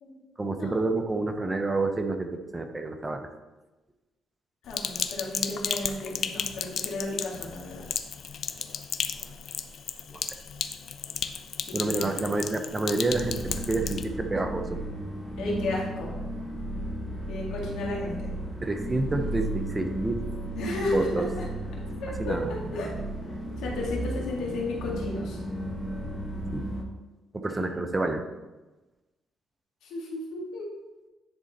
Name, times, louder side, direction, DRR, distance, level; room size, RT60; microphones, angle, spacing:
voice 1, 0.4-3.3 10.1-10.2 11.7-14.8 18.6-20.2 20.9-21.3 22.2-22.5 26.5-26.6 27.3-28.2, right 2 dB, 20° right, 6 dB, 0.7 m, -28 dB
voice 2, 4.7-7.9 11.7-12.1 15.4-16.1 17.3-18.3 20.5-21.2 22.0-22.9 23.6-25.4 27.5-27.8 29.8-30.7, left 2 dB, 85° left, -3 dB, 2.0 m, -33 dB
Sink (filling or washing), 4.7-14.0, left 7 dB, 60° left, 0.4 m, -34 dB
sound 1, 13.1-26.8, right 1 dB, 5° left, 1.2 m, -34 dB
9.8 x 3.8 x 4.2 m, 1.1 s
cardioid pair, 90°, 0 cm